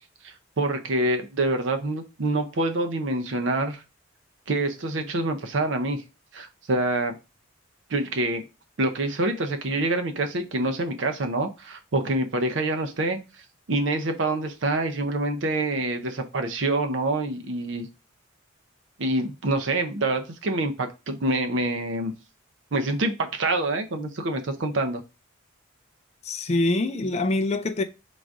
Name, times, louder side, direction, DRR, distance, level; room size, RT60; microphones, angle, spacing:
voice 1, 0.2-3.8 4.5-6.0 6.3-7.1 7.9-8.4 8.8-13.2 13.7-17.9 19.0-22.1 22.7-25.0, right 2 dB, 65° right, 0.6 m, -26 dB
voice 2, 26.2-27.8, left 2 dB, 30° left, 0.4 m, -24 dB
3.9 x 2.5 x 4.6 m
head